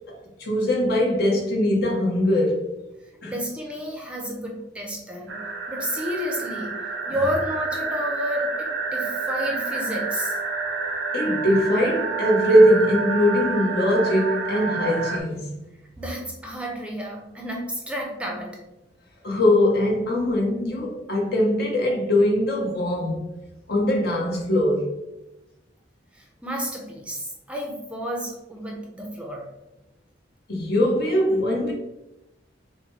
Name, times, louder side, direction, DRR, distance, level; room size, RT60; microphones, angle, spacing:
voice 1, 0.4-2.7 3.2-3.3 7.1-7.2 11.1-15.5 19.2-23.3 23.7-24.9 30.5-31.7, left 1 dB, 60° left, 1.1 m, -21 dB
voice 2, 3.3-5.4 5.7-6.7 7.1-10.4 16.0-18.6 26.1-29.5, equal, 5° right, 0.6 m, -31 dB
sound 1, 5.3-15.2, right 4 dB, 80° right, 0.8 m, -29 dB
6.4 x 2.2 x 3.2 m
head